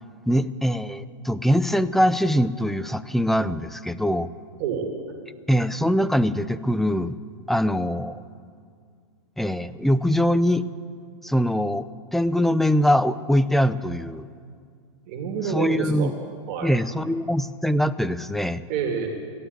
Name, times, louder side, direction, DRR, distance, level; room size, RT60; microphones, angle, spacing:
voice 1, 0.3-4.3 5.5-7.2 7.5-8.2 9.4-10.6 11.2-11.9 12.1-14.3 15.5-16.1 16.6-18.6, equal, ahead, 14 dB, 0.4 m, -22 dB
voice 2, 4.6-4.9 15.1-16.1 16.5-16.7 18.7-19.1, right 6 dB, 45° right, 2 dB, 2.4 m, -27 dB
15.5 x 10.0 x 8.1 m, 2.2 s
hypercardioid pair, 120°, 16 cm